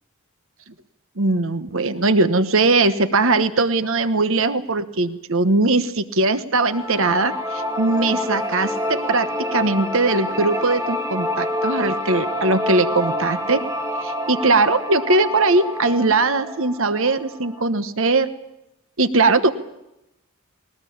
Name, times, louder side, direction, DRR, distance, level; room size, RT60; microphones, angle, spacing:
voice 1, 1.2-13.6 14.0-18.3 19.0-19.5, right 3 dB, 60° right, 11 dB, 1.3 m, -20 dB
sound 1, 6.6-17.6, left 1 dB, 15° right, 2.1 m, -27 dB
21.0 x 19.5 x 8.7 m, 0.89 s
head